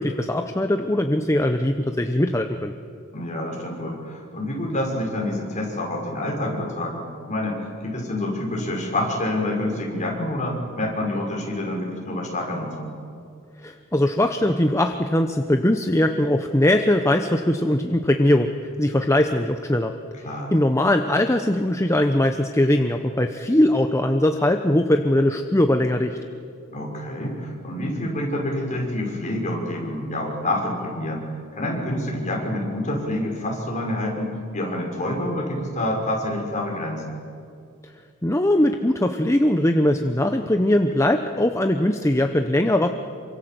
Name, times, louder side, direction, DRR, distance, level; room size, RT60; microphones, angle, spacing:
voice 1, 0.0-2.7 13.6-19.9 20.5-26.2 38.2-42.9, left 1 dB, 15° left, 6 dB, 0.9 m, -20 dB
voice 2, 3.1-12.9 20.2-20.6 26.7-37.2, left 1 dB, 35° left, -1 dB, 6.0 m, -27 dB
27.5 x 25.0 x 7.9 m, 2.4 s
head